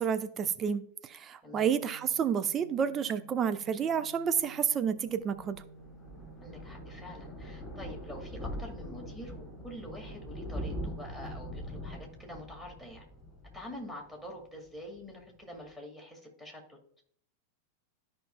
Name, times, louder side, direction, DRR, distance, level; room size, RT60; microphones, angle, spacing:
voice 1, 0.0-5.6, right 7 dB, 25° right, 0.5 m, -30 dB
voice 2, 1.4-1.8 6.4-13.1 13.5-16.8, equal, ahead, 2.2 m, -46 dB
Organ, 1.6-12.5, right 4 dB, 45° right, 2.3 m, -54 dB
Thunder, 5.0-14.4 14.7-15.0 15.3-15.4 15.6-15.7, equal, 20° left, 3.5 m, -42 dB
13.0 x 5.3 x 2.3 m
figure-of-eight pair, 90°, 0 cm